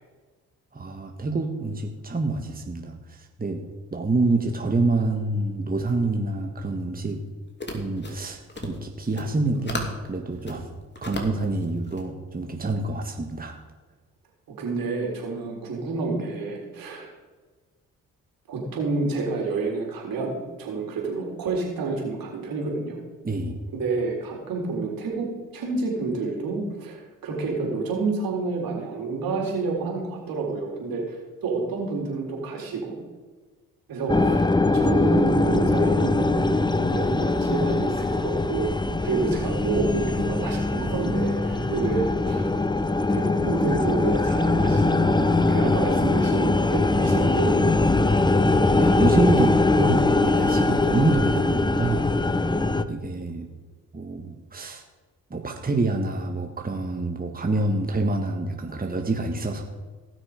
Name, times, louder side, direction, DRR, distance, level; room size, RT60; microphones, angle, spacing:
voice 1, 0.7-3.6 3.9-7.2 7.7-10.7 11.0-13.6 23.2-23.6 48.8-52.1 52.9-53.5 53.9-54.8 55.3-59.6, right 2 dB, 25° right, 3 dB, 1.7 m, -27 dB
sound 1, 7.5-10.0 10.3-12.0, left 2 dB, 30° left, 3.0 m, -36 dB
voice 2, 14.6-17.1 18.5-23.0 23.7-25.3 25.5-33.0 33.9-38.7 39.0-42.5 43.1-48.3, right 3 dB, 70° right, -1 dB, 3.8 m, -29 dB
sound 2, 34.1-52.8, left 2 dB, 10° left, 0.8 m, -22 dB
18.0 x 6.3 x 5.1 m, 1.3 s
hypercardioid pair, 45°, 36 cm